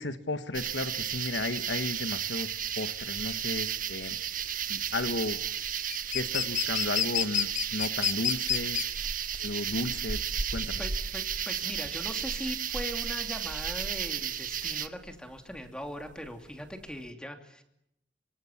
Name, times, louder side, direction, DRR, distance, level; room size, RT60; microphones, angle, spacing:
voice 1, 0.0-4.2 4.7-5.4 6.1-8.8 9.4-10.2 10.5-10.8, left 2 dB, 85° left, 10 dB, 1.4 m, -34 dB
sound 1, 0.5-14.9, right 8 dB, 50° right, 1.2 m, -33 dB
sound 2, 0.9-17.1, left 10 dB, 45° left, 1.1 m, -34 dB
voice 2, 10.8-17.6, equal, 5° left, 5 dB, 2.8 m, -40 dB
26.0 x 25.0 x 7.3 m, 0.78 s
head